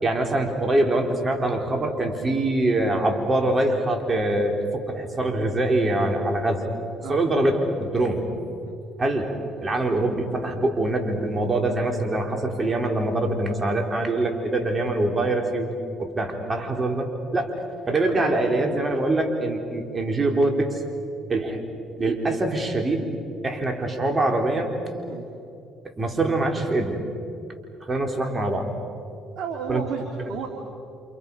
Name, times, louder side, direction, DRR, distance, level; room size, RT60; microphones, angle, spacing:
voice 1, 0.0-6.7 7.1-8.2 9.0-9.3 9.6-15.7 16.0-17.5 17.9-20.8 21.3-21.6 22.0-23.0 23.4-24.7 26.0-27.0 27.8-28.7 29.7-29.8, right 2 dB, 30° right, 3 dB, 4.2 m, -24 dB
voice 2, 29.3-30.5, right 6 dB, 65° right, 2 dB, 3.2 m, -33 dB
29.5 x 28.5 x 5.6 m, 2.6 s
supercardioid pair, 65°, 0 cm